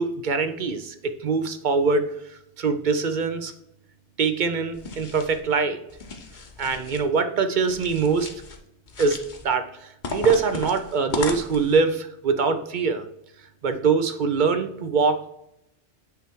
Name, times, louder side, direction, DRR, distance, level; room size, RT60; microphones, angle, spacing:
voice 1, 0.0-3.5 4.2-5.8 6.6-8.3 9.0-13.0 13.6-15.3, right 4 dB, 50° right, 9 dB, 0.7 m, -23 dB
sound 1, 4.7-5.4 5.9-7.0 7.7-8.6 8.9-9.5 10.0-11.8, left 3 dB, 45° left, 1.0 m, -35 dB
8.0 x 3.3 x 4.5 m, 0.80 s
omnidirectional pair, 1.2 m